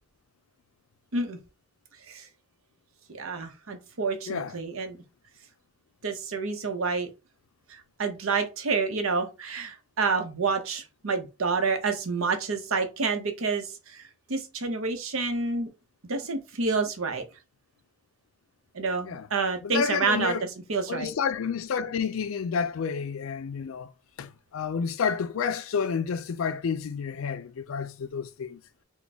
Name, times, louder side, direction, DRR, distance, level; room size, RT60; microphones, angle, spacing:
voice 1, 3.1-5.0 6.0-7.1 7.7-14.0 14.3-15.7 16.1-17.2 18.7-20.4 20.7-21.1, right 4 dB, 90° right, 0.8 m, -28 dB
voice 2, 19.6-20.5 20.9-23.9 24.2-28.6, left 6 dB, 75° left, 0.4 m, -30 dB
4.0 x 2.2 x 3.4 m
head